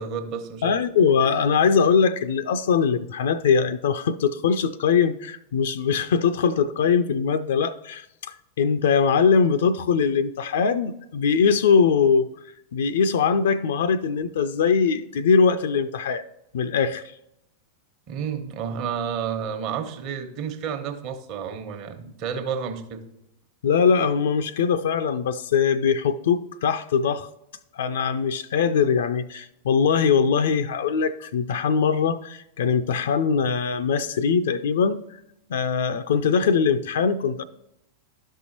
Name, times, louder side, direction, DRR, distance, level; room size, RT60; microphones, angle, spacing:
voice 1, 0.0-0.7 18.1-23.0, right 7 dB, 40° right, 6 dB, 1.1 m, -31 dB
voice 2, 0.6-12.3 12.7-16.2 16.5-17.0 23.6-27.3 27.7-35.0 35.5-37.4, left 6 dB, 60° left, 11 dB, 0.4 m, -21 dB
12.5 x 5.5 x 2.9 m, 0.82 s
figure-of-eight pair, 90°, 0 cm